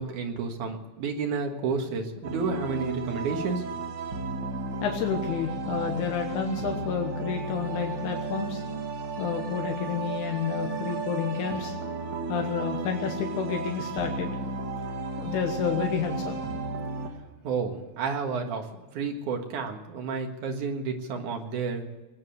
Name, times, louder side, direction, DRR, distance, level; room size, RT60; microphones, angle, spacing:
voice 1, 0.0-3.6 17.4-21.8, right 5 dB, 90° right, 4 dB, 3.1 m, -31 dB
sound 1, 2.2-17.1, right 3 dB, 45° right, 1.8 m, -34 dB
voice 2, 4.8-8.6 9.2-11.8 12.3-14.5 15.2-16.4, left 7 dB, 85° left, 2 dB, 2.8 m, -30 dB
20.5 x 9.0 x 7.9 m, 1.1 s
omnidirectional pair, 3.4 m